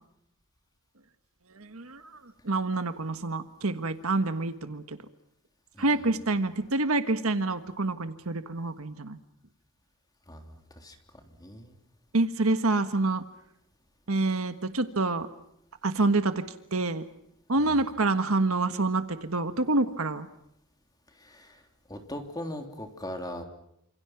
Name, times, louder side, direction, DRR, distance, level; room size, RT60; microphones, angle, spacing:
voice 1, 1.5-5.0 5.8-9.2 12.1-13.2 14.1-15.3 15.8-16.4 16.7-17.0 17.5-20.3, right 2 dB, 75° right, 9 dB, 1.5 m, -27 dB
voice 2, 10.3-11.0 11.4-11.7 17.6-17.8 21.2-21.6 21.9-23.4, left 1 dB, 20° left, 4 dB, 3.3 m, -39 dB
29.0 x 27.5 x 6.0 m, 0.79 s
head